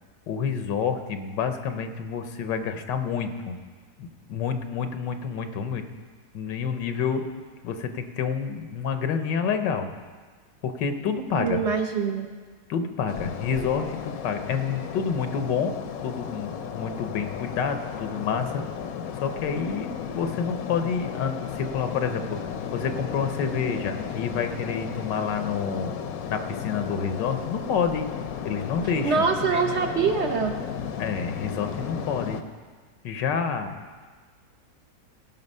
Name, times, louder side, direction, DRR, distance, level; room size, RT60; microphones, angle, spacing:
voice 1, 0.3-3.6 4.0-5.8 6.3-7.3 7.6-9.9 10.6-11.6 12.7-15.8 16.0-18.6 19.2-22.4 22.7-25.9 26.3-28.1 28.4-29.2 31.0-32.4 33.0-33.7, left 6 dB, 85° left, 8 dB, 1.5 m, -28 dB
voice 2, 11.4-12.3 29.0-30.6, right 5 dB, 60° right, 5 dB, 0.8 m, -24 dB
sound 1, 13.1-32.4, left 7 dB, 65° left, 1.0 m, -34 dB
17.0 x 5.8 x 5.4 m, 1.5 s
omnidirectional pair, 1.9 m